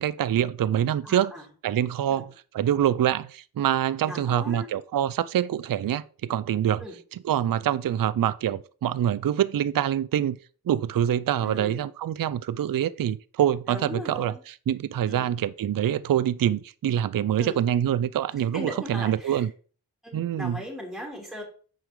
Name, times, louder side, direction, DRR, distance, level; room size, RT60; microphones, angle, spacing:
voice 1, 0.0-1.3 1.6-6.8 7.2-10.4 10.7-19.5 20.1-20.6, right 10 dB, 60° right, 0.5 m, -25 dB
voice 2, 1.0-1.5 2.1-2.2 4.0-4.7 6.8-7.0 11.4-11.8 13.7-14.4 15.1-15.3 17.4-17.6 18.5-19.4 20.0-21.4, equal, ahead, 3.1 m, -38 dB
9.1 x 4.9 x 3.7 m
cardioid pair, 45°, 39 cm